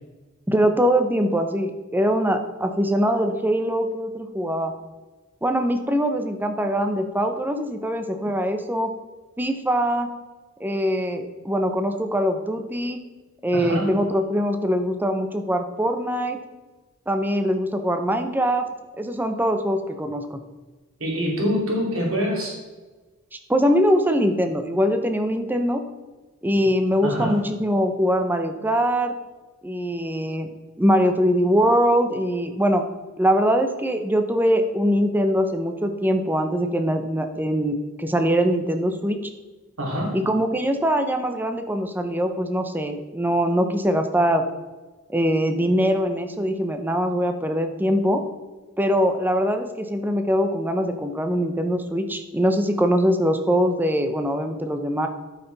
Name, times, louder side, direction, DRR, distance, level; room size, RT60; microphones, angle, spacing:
voice 1, 0.5-4.7 5.4-8.9 9.4-10.1 10.6-13.0 13.4-16.4 17.1-18.7 18.9-20.4 23.3-25.8 26.4-29.2 29.6-30.5 30.8-32.9 33.2-39.2 40.1-44.4 45.1-48.2 48.8-55.1, equal, 10° right, 6 dB, 0.7 m, -22 dB
voice 2, 13.5-13.9 21.0-22.5 27.0-27.3 39.8-40.1, equal, 80° right, -2 dB, 2.8 m, -25 dB
12.5 x 5.8 x 4.0 m, 1.2 s
head